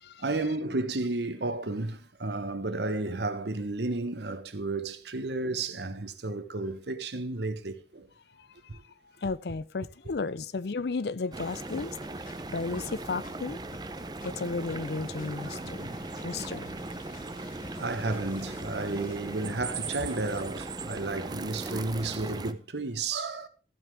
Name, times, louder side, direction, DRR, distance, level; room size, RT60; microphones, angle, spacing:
voice 1, 0.2-8.1 8.7-8.8 15.5-16.1 17.4-17.5 17.8-23.5, right 2 dB, 75° right, 1.1 m, -32 dB
voice 2, 9.2-12.0 12.5-13.6 14.2-15.9 16.2-16.7, left 4 dB, 70° left, 0.5 m, -33 dB
sound 1, 11.3-22.5, right 2 dB, 25° right, 0.6 m, -38 dB
sound 2, 11.7-20.7, left 2 dB, 50° left, 1.3 m, -50 dB
14.5 x 8.0 x 3.5 m
head